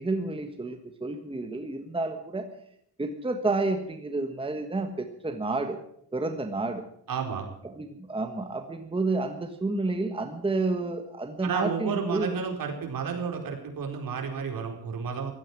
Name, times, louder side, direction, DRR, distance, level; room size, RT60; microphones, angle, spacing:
voice 1, 0.0-2.5 3.0-5.8 6.1-6.8 7.6-12.4, right 3 dB, 15° right, 6 dB, 1.4 m, -30 dB
voice 2, 7.1-7.5 11.4-15.3, right 6 dB, 60° right, 2 dB, 4.5 m, -31 dB
16.0 x 13.0 x 6.1 m, 0.72 s
cardioid pair, 140°, 38 cm